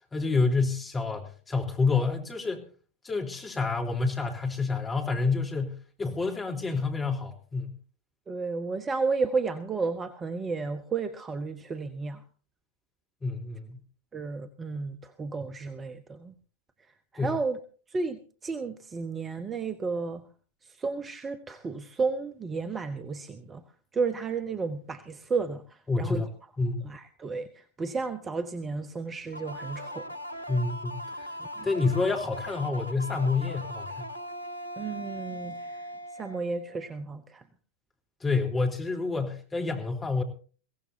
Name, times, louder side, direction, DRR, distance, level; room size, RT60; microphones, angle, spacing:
voice 1, 0.0-2.7 3.0-7.7 13.2-13.8 17.1-17.3 25.9-26.3 26.6-26.8 30.5-31.3 31.6-34.1 38.2-40.2, left 4 dB, 15° left, 2 dB, 3.8 m, -28 dB
voice 2, 8.3-12.2 14.1-16.3 17.1-17.6 17.9-20.3 20.6-23.6 23.9-26.2 26.8-30.1 31.4-31.7 34.8-35.8 36.1-37.4, right 4 dB, 20° right, 11 dB, 1.1 m, -32 dB
sound 1, 29.3-36.9, equal, 80° right, 1.6 m, -39 dB
22.5 x 17.0 x 2.8 m, 0.40 s
figure-of-eight pair, 90°, 0 cm